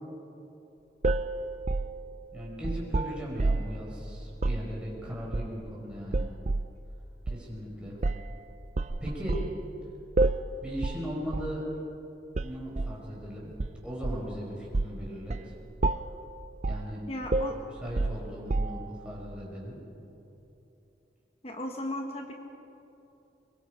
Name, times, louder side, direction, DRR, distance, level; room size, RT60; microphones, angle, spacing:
sound 1, 1.0-3.8 4.3-4.7 5.3-5.8 6.1-6.7 7.3-7.4 8.0-8.3 8.8-9.6 10.2-10.5 10.8-11.1 11.3-11.6 12.4-13.0 13.6-14.3 14.7-15.0 15.3-15.5 15.8-16.2 16.6-16.9 17.3-19.0, right 2 dB, 40° right, 0.5 m, -29 dB
voice 1, 2.3-6.3 7.2-8.0 9.0-9.4 10.6-11.7 12.4-13.5 13.8-15.5 16.7-17.3 17.8-19.8, equal, 5° right, -4 dB, 5.0 m, -38 dB
voice 2, 17.1-17.6 21.4-22.3, left 1 dB, 35° left, 3 dB, 1.4 m, -35 dB
23.5 x 21.5 x 5.2 m, 2.9 s
head